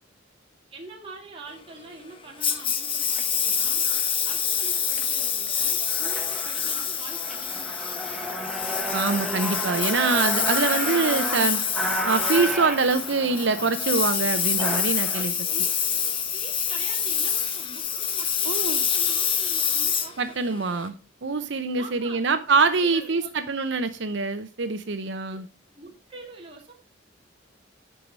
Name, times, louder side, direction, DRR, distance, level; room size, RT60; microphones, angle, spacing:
voice 1, 0.7-3.8 4.2-8.1 10.0-10.2 14.5-14.6 15.2-15.9 16.3-20.6 21.8-22.2 22.8-23.3 25.3-25.4 25.7-26.8, right 3 dB, 25° right, 2.2 m, -44 dB
Engine, 2.4-20.9, left 7 dB, 25° left, 0.9 m, -26 dB
sound 1, 3.0-3.2 3.9-4.1 4.6-5.0 5.5-5.6 5.8-15.2, equal, ahead, 1.4 m, -32 dB
voice 2, 8.9-11.6 12.0-15.3 18.5-18.8 20.2-20.9 21.2-25.4, right 4 dB, 65° right, 0.7 m, -24 dB
11.0 x 4.8 x 5.4 m
head